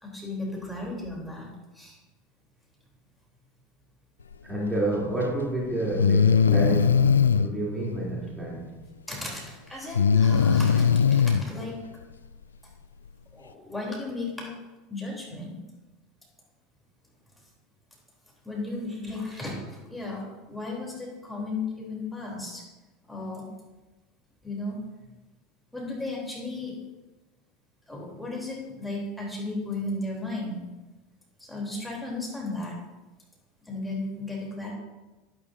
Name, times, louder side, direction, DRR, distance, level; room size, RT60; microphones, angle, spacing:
voice 1, 0.0-2.0 9.1-11.8 13.3-14.5 14.9-15.5 18.4-22.6 23.1-23.5 24.4-24.8 25.7-26.8 27.9-30.6 31.4-32.8 33.6-34.7, left 2 dB, 5° left, -3 dB, 3.3 m, -35 dB
voice 2, 4.4-8.8 19.0-19.1, right 1 dB, 15° right, -5 dB, 3.1 m, -29 dB
Breathing, 5.1-5.2 6.0-7.5 9.9-11.4, left 6 dB, 80° left, 0.3 m, -20 dB
11.0 x 11.0 x 2.7 m, 1.1 s
figure-of-eight pair, 75°, 0 cm